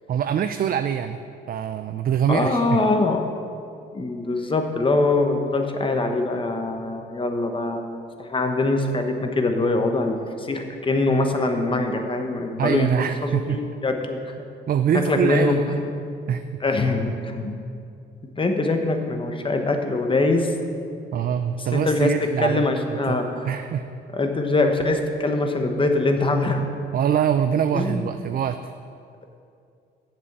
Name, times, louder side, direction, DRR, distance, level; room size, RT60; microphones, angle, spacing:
voice 1, 0.1-1.2 1.5-2.8 12.6-13.6 14.7-15.7 16.3-16.6 21.1-22.7 22.9-23.2 23.4-23.9 26.9-28.6, right 8 dB, 50° right, 9 dB, 0.4 m, -24 dB
voice 2, 2.3-3.2 3.9-7.9 8.2-12.9 13.5-14.5 15.1-15.8 16.6-17.6 18.4-20.5 21.7-22.1 22.4-23.5 24.1-26.6 27.7-28.0, left 2 dB, 25° left, 5 dB, 1.1 m, -23 dB
7.5 x 6.2 x 8.0 m, 2.4 s
cardioid pair, 90°, 20 cm